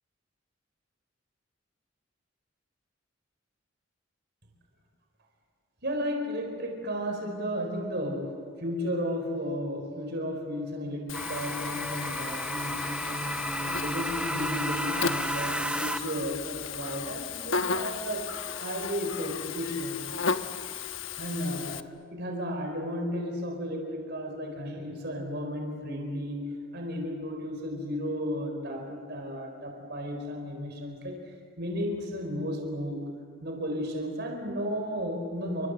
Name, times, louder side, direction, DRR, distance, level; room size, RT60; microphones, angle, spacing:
voice 1, 5.8-18.3 18.6-20.0 21.2-21.8 22.1-33.0 33.4-35.7, equal, 55° right, 3 dB, 4.4 m, -34 dB
Buzz, 11.1-21.8, left 5 dB, 75° left, 1.2 m, -35 dB
sound 1, 11.1-16.3, right 1 dB, 5° right, 0.7 m, -33 dB
29.5 x 26.0 x 7.7 m, 2.2 s
head